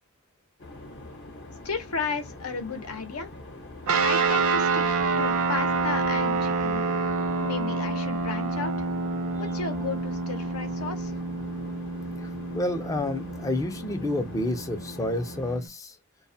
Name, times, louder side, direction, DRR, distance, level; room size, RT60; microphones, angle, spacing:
sound 1, 0.6-15.6, left 2 dB, 55° left, 0.8 m, -44 dB
voice 1, 1.6-3.3 4.0-4.9 5.2-6.9 7.4-8.9 9.4-11.2, left 4 dB, 80° left, 0.7 m, -34 dB
sound 2, 3.9-15.7, right 4 dB, 70° right, 0.6 m, -28 dB
voice 2, 12.2-16.0, left 1 dB, 15° left, 0.4 m, -29 dB
2.2 x 2.1 x 2.6 m
head